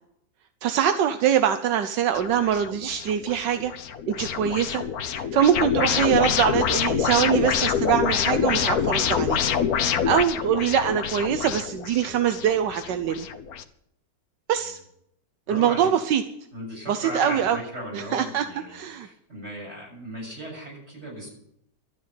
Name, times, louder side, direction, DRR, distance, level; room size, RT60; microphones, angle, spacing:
voice 1, 0.6-3.7 4.1-4.8 5.1-9.4 9.8-13.3 14.5-14.8 15.5-16.2 16.9-17.6 17.9-19.1, right 9 dB, 85° right, 9 dB, 1.4 m, -23 dB
sound 1, 2.2-13.6, left 8 dB, 65° left, 1.3 m, -26 dB
voice 2, 15.5-15.9 16.5-21.3, equal, 40° right, -2 dB, 7.2 m, -37 dB
12.5 x 9.4 x 9.5 m, 0.75 s
omnidirectional pair, 1.8 m